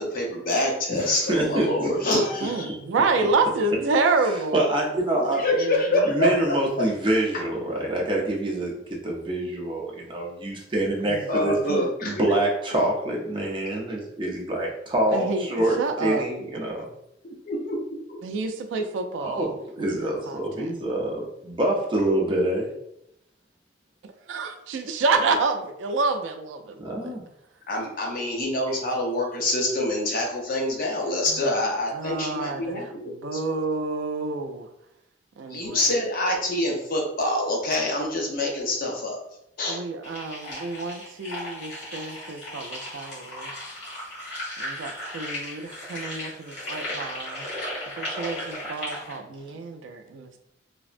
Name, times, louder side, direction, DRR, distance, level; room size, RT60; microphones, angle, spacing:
voice 1, 0.0-2.8 5.2-6.3 11.0-12.3 17.2-17.8 27.7-33.6 35.5-39.2 39.6-39.8, left 1 dB, 50° left, -1 dB, 0.7 m, -26 dB
voice 2, 1.3-1.9 4.5-5.4 6.1-8.7 9.0-11.5 12.0-16.8 19.2-22.6 26.8-27.2, right 1 dB, 25° right, -2 dB, 0.6 m, -26 dB
voice 3, 2.4-4.6 5.6-6.1 7.6-7.7 11.1-11.3 11.7-11.9 15.1-16.3 18.2-20.7 24.3-26.9 31.3-31.4 31.9-32.8 33.1-34.7 35.4-35.9 39.7-43.5 44.6-47.5 48.0-50.4, right 3 dB, 85° right, 7 dB, 0.3 m, -28 dB
sound 1, 40.0-49.2, left 1 dB, 80° left, 1.5 m, -36 dB
3.3 x 2.0 x 2.5 m, 0.78 s
head